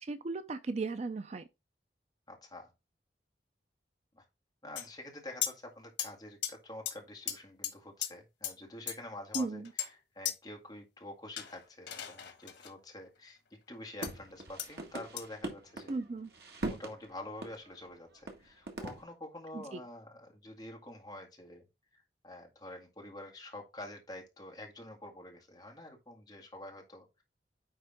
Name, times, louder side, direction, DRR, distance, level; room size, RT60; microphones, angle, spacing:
voice 1, 0.1-1.4 9.3-9.7 15.9-16.3 19.5-19.8, right 3 dB, 40° right, 0.4 m, -36 dB
voice 2, 2.3-2.7 4.1-4.2 4.6-13.4 13.7-15.9 16.6-21.7 21.9-27.2, left 1 dB, 20° left, 1.9 m, -47 dB
sound 1, 4.8-4.9 5.4-5.5 6.0-6.1 6.4-6.5 6.9-7.0 7.3-7.4 7.6-7.7 8.0-8.1 8.4-8.5 8.9-9.0 9.3-9.9 10.3-10.4 11.4-12.7 14.0-14.1 14.6-14.7 15.2-15.3, left 11 dB, 85° left, 1.3 m, -36 dB
sound 2, 14.0-16.0 16.2-17.0 17.4-17.5 17.9-18.0 18.3-18.4 18.7-19.0, right 2 dB, 65° right, 1.7 m, -40 dB
9.4 x 3.6 x 3.5 m
head